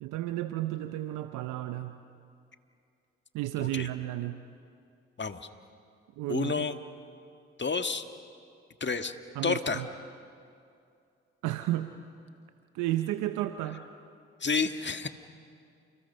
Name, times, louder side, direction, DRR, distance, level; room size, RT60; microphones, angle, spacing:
voice 1, 0.0-2.0 3.3-4.4 6.2-6.6 9.3-9.9 11.4-11.9 12.7-13.8, right 14 dB, 85° right, 9 dB, 0.8 m, -32 dB
voice 2, 3.6-3.9 5.2-5.5 6.3-6.7 7.6-8.0 8.8-9.1 9.4-9.8 14.4-15.1, left 4 dB, 35° left, 8 dB, 1.7 m, -30 dB
30.0 x 29.5 x 5.6 m, 2.4 s
hypercardioid pair, 45°, 30 cm